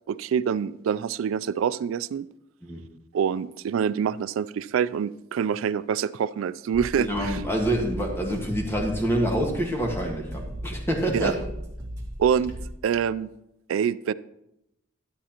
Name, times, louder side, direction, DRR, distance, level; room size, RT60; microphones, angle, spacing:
voice 1, 0.1-2.3 3.1-7.4 11.1-11.3 12.2-12.5 12.8-13.3 13.7-14.1, right 7 dB, 90° right, 17 dB, 0.3 m, -26 dB
sound 1, 6.7-12.8, equal, 15° right, 2.6 m, -37 dB
voice 2, 6.9-11.4, equal, 10° left, 1 dB, 1.5 m, -27 dB
12.5 x 8.4 x 2.9 m, 0.85 s
head